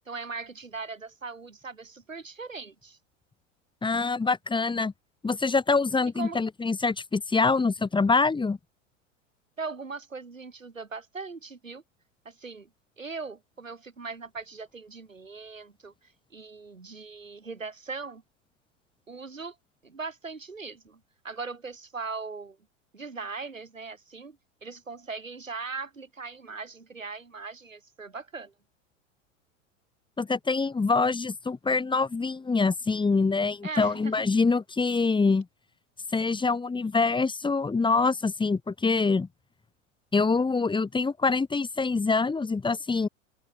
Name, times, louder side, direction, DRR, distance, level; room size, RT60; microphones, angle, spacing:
voice 1, 0.1-3.0 6.2-6.4 9.6-11.8 12.2-12.7 13.0-18.2 19.1-19.6 19.8-22.6 22.9-28.5 33.6-34.3, right 4 dB, 85° right, 4.5 m, -39 dB
voice 2, 3.8-4.9 5.2-8.6 30.2-35.5 36.1-39.3 40.1-43.1, left 4 dB, 10° left, 3.2 m, -25 dB
open air
figure-of-eight pair, 85°, 38 cm